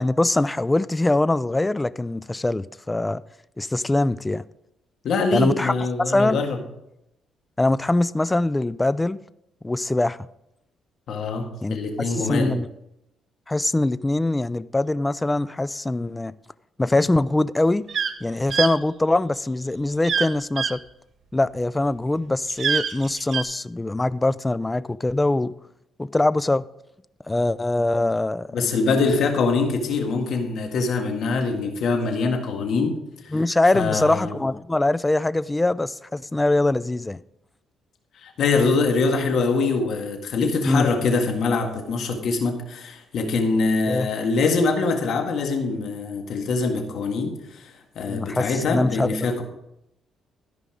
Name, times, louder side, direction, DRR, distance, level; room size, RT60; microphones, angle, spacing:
voice 1, 0.0-3.2 3.6-4.4 5.3-5.7 6.1-6.4 7.6-9.2 9.6-10.2 11.6-11.8 12.1-12.7 13.5-16.4 16.8-17.9 18.2-20.8 21.3-25.5 26.0-26.6 27.3-28.5 33.3-37.2 40.6-40.9 43.9-44.1 48.1-49.2, left 2 dB, 15° left, 0.4 m, -23 dB
voice 2, 5.0-6.6 11.1-12.6 28.5-33.3 33.7-34.3 38.2-49.4, left 4 dB, 70° left, 1.8 m, -24 dB
sound 1, 17.9-18.1 18.5-18.7 20.0-20.3 20.6-20.7 22.5-23.4, right 7 dB, 55° right, 0.8 m, -24 dB
13.5 x 5.4 x 4.9 m
cardioid pair, 90°, 0 cm